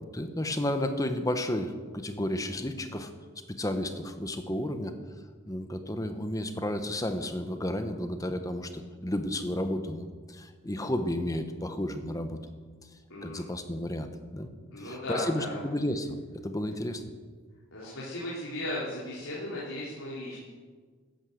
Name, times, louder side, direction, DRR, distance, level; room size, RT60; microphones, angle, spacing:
voice 1, 0.0-3.1 3.5-4.9 5.5-12.4 13.2-14.5 14.8-17.0, left 1 dB, 15° left, 8 dB, 1.0 m, -32 dB
voice 2, 13.1-13.5 14.7-15.6 17.7-20.4, left 1 dB, 80° left, -7 dB, 3.6 m, -36 dB
13.0 x 11.0 x 7.9 m, 1.5 s
head